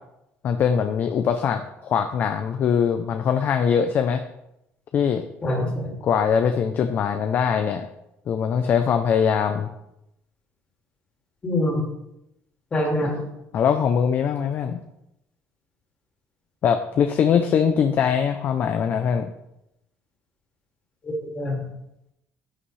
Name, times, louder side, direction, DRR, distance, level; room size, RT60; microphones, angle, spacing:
voice 1, 0.4-4.2 4.9-5.2 6.0-7.9 8.3-9.7 13.5-14.8 16.6-19.3, left 7 dB, 40° left, 7 dB, 0.6 m, -22 dB
voice 2, 5.4-5.9 11.4-11.9 12.7-13.2 21.0-21.6, left 1 dB, 25° left, -1 dB, 2.6 m, -25 dB
11.0 x 8.6 x 3.3 m, 0.85 s
cardioid pair, 165°, 5 cm